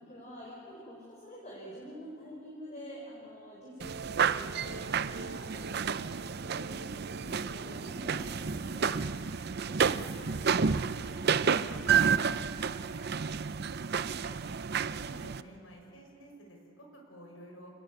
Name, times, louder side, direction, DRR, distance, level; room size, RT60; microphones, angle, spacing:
voice 1, 0.0-12.9, equal, 35° left, -4 dB, 5.2 m, -48 dB
sound 1, 3.8-15.4, right 6 dB, 55° right, 0.6 m, -31 dB
voice 2, 13.9-14.4 14.9-17.7, right 1 dB, 85° left, 1 dB, 6.3 m, -51 dB
27.0 x 20.5 x 8.1 m, 2.8 s
head